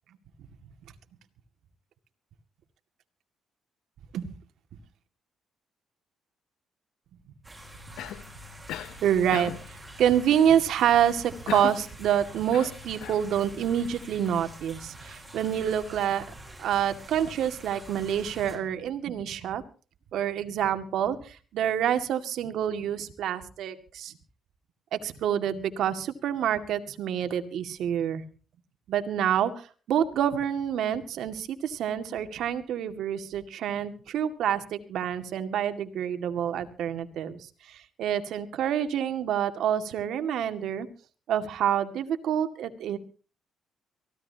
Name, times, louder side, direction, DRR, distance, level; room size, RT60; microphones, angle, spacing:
sound 1, 7.4-18.6, equal, 15° right, 7.1 m, -46 dB
Cough, 8.0-8.3 8.7-9.0 9.3-9.7 11.5-11.9 12.5-13.3, left 12 dB, 85° left, 0.8 m, -36 dB
voice 1, 8.7-16.2 16.6-19.6 20.1-24.1 24.9-28.2 28.9-40.9 41.3-43.0, right 9 dB, 75° right, 9 dB, 2.1 m, -27 dB
24.0 x 16.0 x 2.9 m, 0.37 s
cardioid pair, 90°, 0 cm